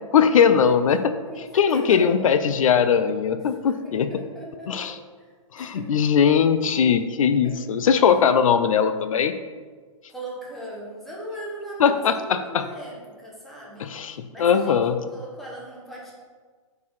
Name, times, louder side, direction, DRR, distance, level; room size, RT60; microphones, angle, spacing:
voice 1, 0.1-1.1 1.5-4.1 4.7-5.0 5.5-9.3 11.8-12.7 13.8-15.0, left 7 dB, 75° left, 10 dB, 0.4 m, -20 dB
voice 2, 1.3-2.3 3.7-4.9 5.2-5.3 5.6-5.9 7.4-7.6 10.1-13.9 14.3-14.8 15.1-16.1, right 1 dB, ahead, -5 dB, 1.0 m, -38 dB
5.1 x 4.0 x 5.4 m, 1.5 s
hypercardioid pair, 160°, 18 cm